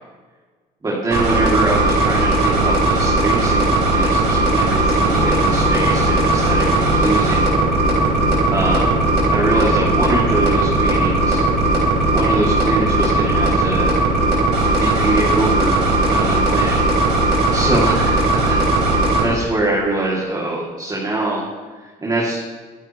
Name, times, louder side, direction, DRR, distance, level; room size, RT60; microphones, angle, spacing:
voice 1, 0.8-7.5 8.5-8.9 9.3-11.4 12.1-14.0 14.7-16.8 17.2-18.6 19.2-21.5 22.0-22.4, right 2 dB, 20° right, -4 dB, 2.6 m, -23 dB
sound 1, 1.1-19.2, right 2 dB, 75° right, 3.7 m, -17 dB
sound 2, 5.1-14.0, left 1 dB, 10° left, 1.3 m, -29 dB
23.0 x 9.1 x 3.1 m, 1.4 s
cardioid pair, 110°, 17 cm